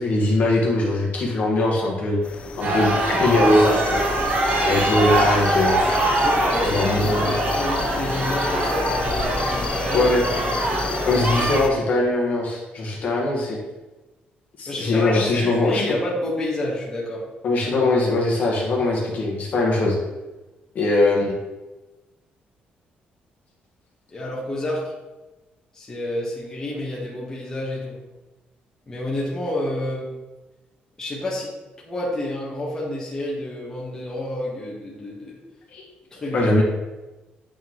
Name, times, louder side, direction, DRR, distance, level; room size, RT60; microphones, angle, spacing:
voice 1, 0.0-2.2 2.6-4.0 4.6-5.8 6.6-7.3 9.9-10.2 11.0-13.6 14.6-15.8 17.4-19.9 20.7-21.4 35.7-35.9 36.3-36.6, left 2 dB, 50° left, -3 dB, 1.4 m, -21 dB
sound 1, 2.2-11.7, left 4 dB, 35° left, 0.4 m, -30 dB
sound 2, 2.6-11.6, right 2 dB, 50° right, 1.1 m, -23 dB
voice 2, 6.2-10.1 10.6-10.7 14.7-17.2 24.1-24.9 25.7-28.0 28.9-30.1 31.0-31.5 31.8-35.4 36.1-36.5, left 1 dB, 20° left, -5 dB, 1.2 m, -29 dB
8.5 x 3.7 x 3.1 m, 1.1 s
cardioid pair, 150°, 3 cm